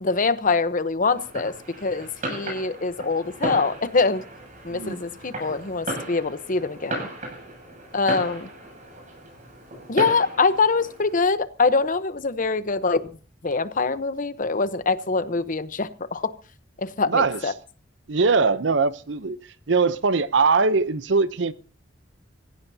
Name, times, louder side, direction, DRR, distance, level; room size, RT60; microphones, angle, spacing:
voice 1, 0.0-1.5 1.8-4.2 4.6-7.1 7.9-8.5 9.9-13.0 13.4-16.3 16.8-17.5, left 4 dB, 45° left, 0.9 m, -24 dB
Fireworks, 1.1-11.2, right 1 dB, 40° right, 7.4 m, -35 dB
voice 2, 17.1-17.4 18.1-19.4 19.7-21.5, right 4 dB, 70° right, 0.7 m, -21 dB
25.5 x 16.0 x 2.8 m
head